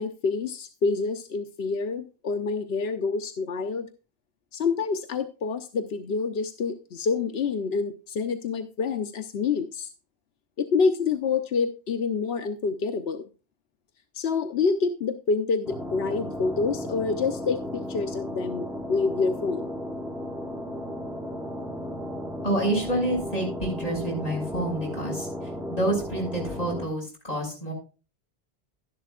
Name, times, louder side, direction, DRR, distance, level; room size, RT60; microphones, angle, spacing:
voice 1, 0.0-3.9 4.5-9.9 10.6-13.3 14.1-19.7, left 4 dB, 85° left, 8 dB, 1.0 m, -27 dB
sound 1, 15.7-26.9, equal, ahead, 1.0 m, -34 dB
voice 2, 22.4-25.3 25.7-27.7, right 1 dB, 40° left, -1 dB, 4.9 m, -28 dB
11.5 x 11.0 x 2.4 m, 0.33 s
omnidirectional pair, 1.0 m